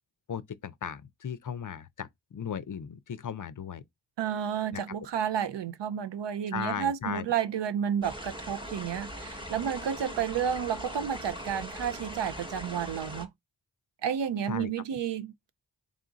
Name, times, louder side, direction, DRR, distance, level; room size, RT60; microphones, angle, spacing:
voice 1, 0.3-3.8 4.7-4.8 6.5-7.3 14.5-14.7, left 7 dB, 45° left, 0.5 m, -36 dB
voice 2, 4.2-13.3 14.0-15.5, right 8 dB, 70° right, 0.5 m, -31 dB
sound 1, 8.0-13.3, equal, 10° right, 0.9 m, -41 dB
3.6 x 2.4 x 3.8 m
cardioid pair, 50°, 44 cm